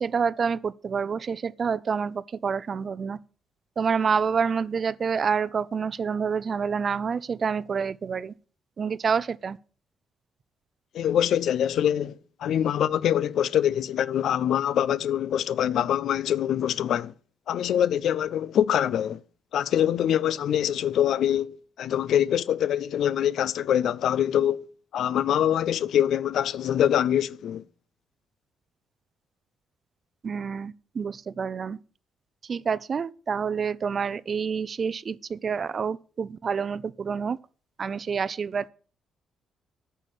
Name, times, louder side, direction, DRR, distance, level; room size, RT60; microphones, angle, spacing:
voice 1, 0.0-3.2 3.8-8.3 8.8-9.6 30.2-31.8 32.5-37.4 37.8-38.7, right 6 dB, 45° right, 0.5 m, -28 dB
voice 2, 10.9-12.1 12.4-17.1 17.5-19.2 19.5-24.7 24.9-27.6, left 10 dB, 70° left, 0.5 m, -24 dB
9.2 x 5.6 x 8.0 m
cardioid pair, 90°, 0 cm